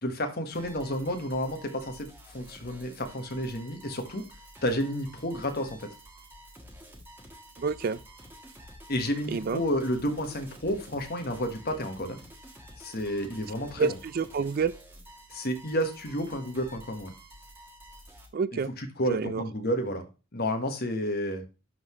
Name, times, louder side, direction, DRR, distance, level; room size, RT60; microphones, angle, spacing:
voice 1, 0.0-4.2 4.6-5.9 8.9-12.2 12.8-13.9 15.3-17.1 18.5-20.0 20.3-21.4, equal, 45° left, 1.4 m, -31 dB
sound 1, 0.5-18.3, equal, 10° right, 1.4 m, -50 dB
voice 2, 7.6-8.0 9.3-9.6 13.8-14.7 18.3-18.7 19.1-19.4, right 5 dB, 45° right, 0.3 m, -28 dB
11.5 x 4.0 x 3.1 m
head